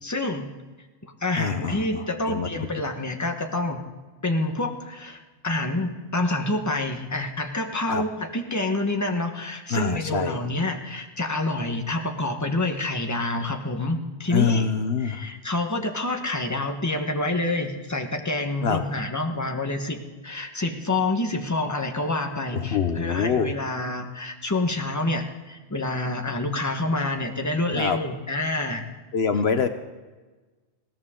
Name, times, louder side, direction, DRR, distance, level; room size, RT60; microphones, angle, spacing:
voice 1, 0.0-0.5 1.0-3.8 4.2-14.7 15.0-28.9, left 2 dB, 15° left, 4 dB, 1.3 m, -27 dB
voice 2, 1.4-2.5 7.9-8.0 9.7-10.4 14.3-15.2 18.6-18.8 22.5-23.5 27.7-28.0 29.1-29.7, left 6 dB, 65° left, 8 dB, 1.0 m, -25 dB
20.5 x 16.5 x 3.8 m, 1.3 s
omnidirectional pair, 1.2 m